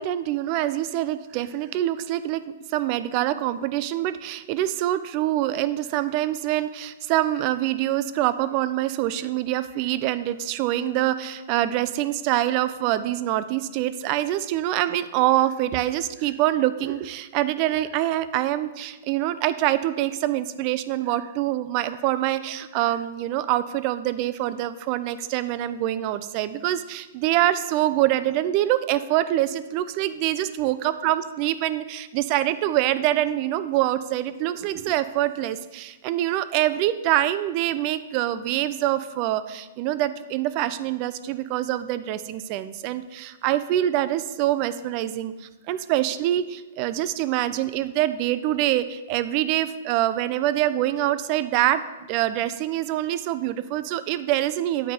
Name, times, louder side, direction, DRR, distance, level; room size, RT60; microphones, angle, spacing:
voice 1, 0.0-2.4 2.7-51.8 52.1-54.9, right 13 dB, 30° right, 13 dB, 0.3 m, -25 dB
8.6 x 4.8 x 4.3 m, 1.1 s
hypercardioid pair, 165°, 0 cm